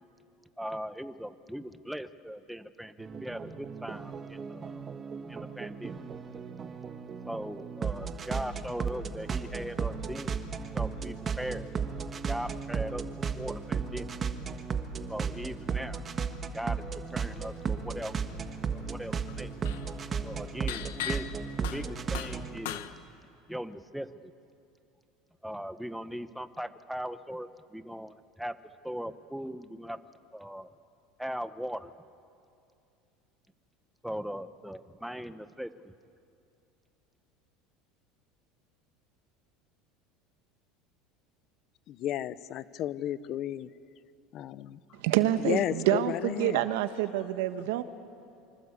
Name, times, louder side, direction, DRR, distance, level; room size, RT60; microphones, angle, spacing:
voice 1, 0.6-6.0 7.2-10.4 10.7-11.7 12.3-14.1 15.1-16.0 16.5-18.4 18.7-19.5 20.2-21.3 21.7-22.9 23.5-24.3 25.4-30.0 30.3-30.7 31.2-31.9 34.0-35.9, equal, ahead, 11 dB, 0.8 m, -39 dB
sound 1, 3.0-22.6, right 6 dB, 25° right, 1.4 m, -35 dB
sound 2, 17.8-18.3 18.6-22.9, left 12 dB, 90° left, 1.3 m, -39 dB
voice 2, 41.9-43.7 44.3-44.8 45.4-46.6, left 12 dB, 45° left, 16 dB, 0.8 m, -33 dB
voice 3, 45.0-47.8, right 13 dB, 80° right, 10 dB, 1.4 m, -27 dB
25.5 x 25.0 x 8.3 m, 2.5 s
supercardioid pair, 140°, 0 cm